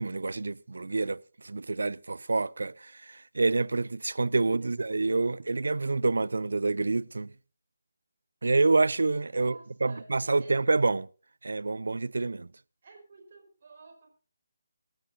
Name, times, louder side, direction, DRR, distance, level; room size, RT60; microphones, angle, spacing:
voice 1, 0.0-7.3 8.4-9.5 9.8-11.1 11.4-12.5, right 3 dB, 65° right, 0.5 m, -27 dB
voice 2, 9.3-10.6 12.8-14.1, right 4 dB, 45° right, 5.2 m, -51 dB
24.5 x 13.0 x 2.5 m
figure-of-eight pair, 150°, 0 cm